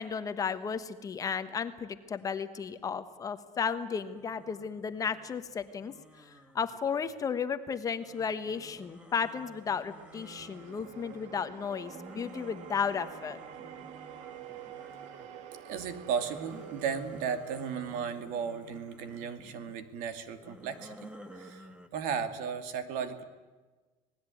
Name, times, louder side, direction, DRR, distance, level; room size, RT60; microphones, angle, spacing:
voice 1, 0.0-13.4, left 6 dB, 25° left, 10 dB, 1.2 m, -34 dB
sound 1, 4.0-7.4 8.0-15.4 15.8-19.7 20.3-21.9, equal, 5° right, 1.6 m, -53 dB
sound 2, 8.7-19.0, right 9 dB, 55° right, 1.7 m, -48 dB
voice 2, 15.6-21.7 21.9-23.2, right 7 dB, 75° right, 9 dB, 2.5 m, -35 dB
27.0 x 19.0 x 9.3 m, 1.3 s
cardioid pair, 170°, 14 cm